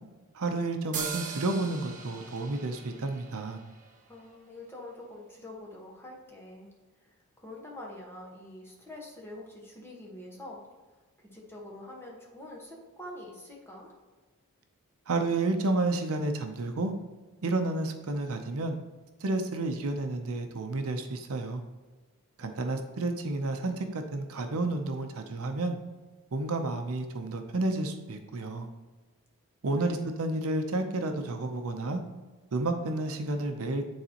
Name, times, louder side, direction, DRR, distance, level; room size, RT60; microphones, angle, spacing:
voice 1, 0.3-3.6 15.1-16.9 17.4-18.7 19.2-21.6 22.4-25.8 26.3-28.7 29.6-32.0 32.5-33.9, right 2 dB, 70° right, 6 dB, 0.6 m, -31 dB
sound 1, 0.9-4.5, right 5 dB, 35° right, 0.9 m, -40 dB
voice 2, 4.1-6.7 7.0-10.7 11.2-14.0 22.4-22.8 29.8-30.0, left 1 dB, 10° left, -2 dB, 1.3 m, -46 dB
9.3 x 4.1 x 2.9 m, 1.3 s
head